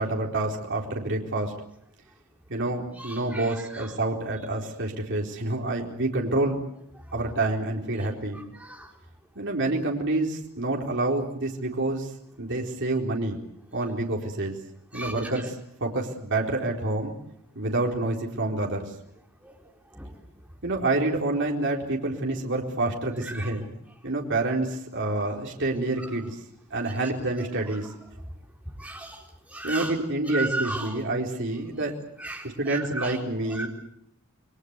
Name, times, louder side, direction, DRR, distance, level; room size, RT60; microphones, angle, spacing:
voice 1, 0.0-1.5 2.5-6.6 7.1-8.4 9.4-12.1 12.4-13.4 13.7-14.6 14.9-15.5 15.8-17.1 17.5-18.9 20.6-23.7 24.0-26.4 26.7-27.9 29.6-31.9 32.6-33.7, right 2 dB, 55° right, 0 dB, 4.2 m, -28 dB
voice 2, 3.0-4.0 4.6-4.7 8.0-8.9 14.9-15.5 19.4-19.6 19.9-20.1 23.2-23.6 25.7-26.2 27.6-27.9 28.8-29.9 30.3-31.0 31.8-31.9 32.2-33.7, right 2 dB, 5° right, 1 dB, 3.9 m, -37 dB
29.0 x 22.5 x 8.2 m, 0.74 s
head